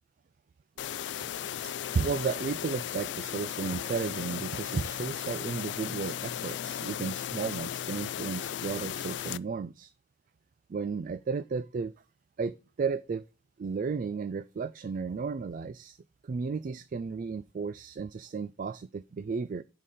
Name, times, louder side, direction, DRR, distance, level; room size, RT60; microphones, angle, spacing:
sound 1, 0.8-9.4, left 10 dB, 65° left, 0.3 m, -36 dB
voice 1, 1.6-9.9 10.7-11.9 12.4-13.2 13.6-16.0 16.2-19.6, right 5 dB, 45° right, 0.3 m, -34 dB
11.0 x 5.1 x 4.2 m
head